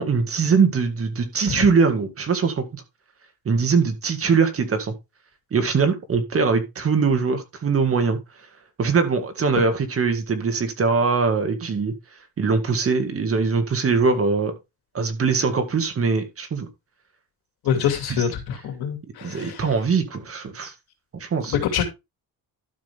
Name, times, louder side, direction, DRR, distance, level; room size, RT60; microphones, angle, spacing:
voice 1, 0.0-2.8 3.5-4.9 5.5-8.2 8.8-11.9 12.4-14.6 14.9-16.7 17.7-17.8 18.1-18.3 19.2-20.7 21.1-21.6, right 5 dB, 40° right, 1.9 m, -22 dB
voice 2, 17.6-19.6 21.5-21.8, left 8 dB, 90° left, 2.7 m, -25 dB
12.0 x 6.2 x 3.5 m
cardioid pair, 135°, 37 cm